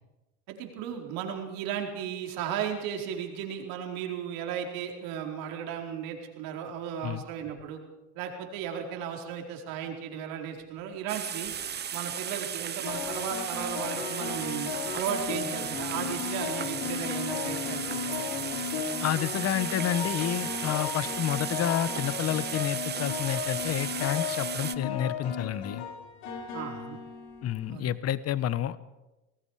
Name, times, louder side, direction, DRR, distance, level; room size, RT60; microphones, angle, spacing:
voice 1, 0.5-7.8 8.1-11.5 11.9-18.3 26.5-27.0 27.7-27.9, right 8 dB, 65° right, 2 dB, 4.6 m, -35 dB
sound 1, 11.1-24.7, right 8 dB, 30° right, 0.9 m, -35 dB
sound 2, 11.2-11.6 12.8-27.7, left 7 dB, 75° left, 4.4 m, -35 dB
voice 2, 19.0-25.8 27.4-28.8, left 11 dB, 45° left, 16 dB, 1.2 m, -29 dB
27.5 x 19.0 x 5.0 m, 1.0 s
hypercardioid pair, 90°, 36 cm